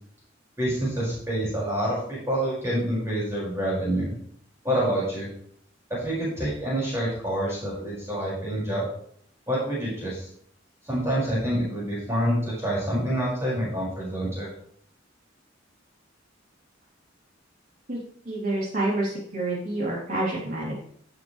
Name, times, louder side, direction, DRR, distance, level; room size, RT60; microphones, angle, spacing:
voice 1, 0.6-4.1 4.6-5.3 5.9-8.9 9.5-10.3 10.8-14.5, right 1 dB, 15° right, -7 dB, 5.5 m, -27 dB
voice 2, 18.2-20.7, right 2 dB, 45° right, -7 dB, 3.5 m, -28 dB
16.5 x 7.2 x 3.3 m, 0.64 s
head